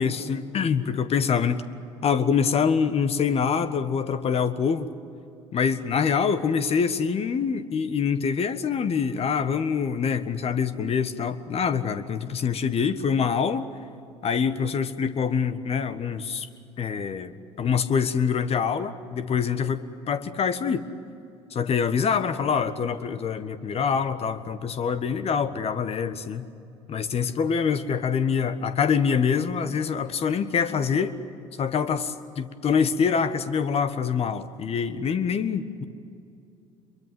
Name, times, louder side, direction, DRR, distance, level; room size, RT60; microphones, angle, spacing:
voice 1, 0.0-1.6 2.0-4.9 5.5-13.7 14.2-16.5 16.8-17.3 17.6-20.9 21.5-26.4 26.9-31.2 31.6-35.8, left 6 dB, 40° left, 12 dB, 1.5 m, -25 dB
26.5 x 23.0 x 7.9 m, 2.6 s
figure-of-eight pair, 60°, 16 cm